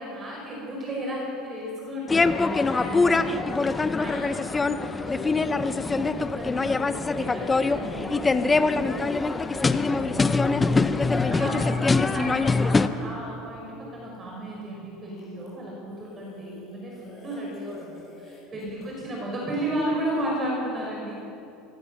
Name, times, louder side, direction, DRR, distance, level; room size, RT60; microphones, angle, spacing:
voice 1, 0.0-9.0 9.2-21.1, right 1 dB, 20° right, -3 dB, 5.4 m, -34 dB
sound 1, 2.1-12.9, left 3 dB, 15° left, 0.7 m, -23 dB
sound 2, 15.1-19.8, left 2 dB, 30° left, 6.8 m, -51 dB
29.0 x 20.5 x 6.6 m, 2.8 s
cardioid pair, 160°, 0 cm